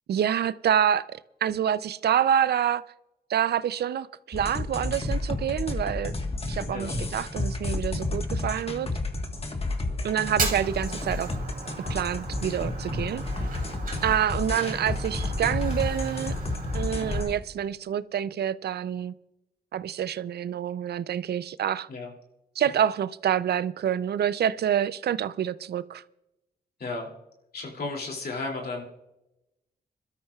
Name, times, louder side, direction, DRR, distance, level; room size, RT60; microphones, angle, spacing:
voice 1, 0.1-2.8 3.3-6.1 6.5-8.9 10.0-11.3 11.9-13.2 14.0-16.4 16.7-19.1 19.7-21.9 22.6-26.0, right 9 dB, 75° right, 0.5 m, -27 dB
sound 1, 4.3-17.4, left 2 dB, 35° left, 1.4 m, -31 dB
Fire, 10.2-17.2, right 3 dB, 55° right, 2.7 m, -36 dB
voice 2, 26.8-27.1 27.5-28.8, left 3 dB, 70° left, 2.6 m, -34 dB
25.5 x 13.0 x 2.3 m
cardioid pair, 70°, 17 cm